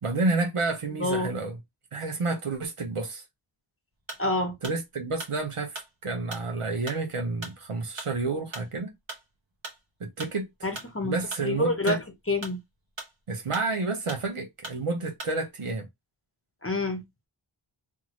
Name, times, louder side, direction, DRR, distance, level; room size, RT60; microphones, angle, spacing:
voice 1, 0.0-1.6 1.9-3.2 4.6-8.9 10.0-10.5 11.0-12.0 13.3-15.9, right 3 dB, 85° right, 1.0 m, -30 dB
sound 1, 4.0-4.3 4.6-9.8 10.2-11.5 11.8-13.3 13.5-14.3 14.6-14.8 15.2-15.4, right 2 dB, 65° right, 1.2 m, -41 dB
voice 2, 4.2-4.5 10.6-11.2 11.4-12.0 12.3-12.6 16.6-17.0, left 2 dB, 25° left, 0.8 m, -27 dB
2.7 x 2.5 x 2.9 m
wide cardioid pair, 45°, 50 cm